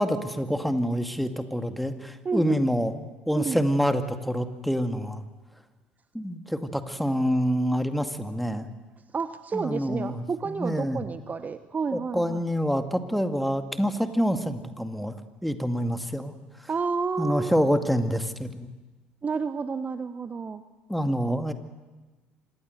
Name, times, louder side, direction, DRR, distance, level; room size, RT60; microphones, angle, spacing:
voice 1, 0.0-2.9 3.3-5.2 6.1-8.7 9.5-11.0 11.9-15.1 15.4-16.3 17.2-18.7 20.9-21.5, equal, ahead, 8 dB, 2.3 m, -26 dB
voice 2, 2.2-2.7 3.3-3.6 9.1-12.4 16.7-17.5 19.2-20.6, right 5 dB, 30° right, 12 dB, 1.1 m, -30 dB
26.0 x 20.0 x 8.1 m, 1.2 s
figure-of-eight pair, 60°, 5 cm